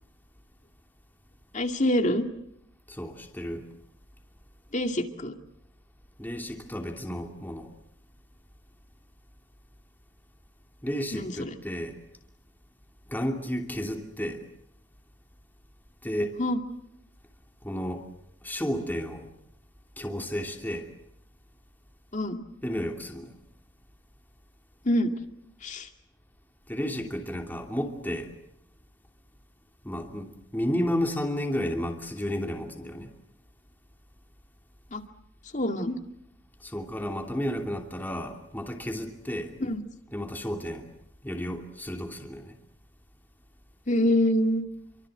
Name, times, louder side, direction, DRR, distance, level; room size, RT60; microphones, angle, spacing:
voice 1, 1.5-2.3 4.7-5.3 11.1-11.5 16.4-16.6 22.1-22.4 24.8-25.1 25.6-25.9 34.9-35.0 35.5-36.0 39.6-39.8 43.9-44.6, left 1 dB, 40° left, 2.4 m, -25 dB
voice 2, 2.9-3.7 6.2-7.7 10.8-12.0 13.1-14.4 16.0-16.4 17.6-18.0 18.4-19.3 20.0-20.9 22.6-23.3 26.7-28.3 29.8-33.1 36.6-39.5 40.1-40.9 41.2-42.5, equal, 10° left, 2.8 m, -32 dB
29.0 x 24.5 x 7.9 m
head